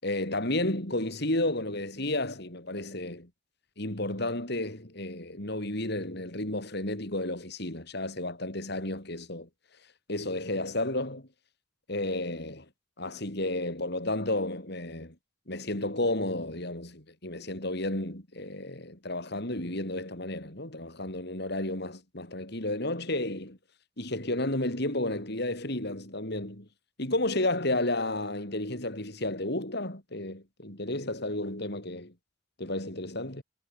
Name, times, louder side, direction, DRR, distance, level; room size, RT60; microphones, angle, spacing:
voice 1, 0.0-3.3 3.8-9.5 10.1-11.3 11.9-12.6 13.0-15.1 15.5-23.6 24.0-26.7 27.0-32.1 32.6-33.4, left 1 dB, 55° left, 5.1 m, -32 dB
head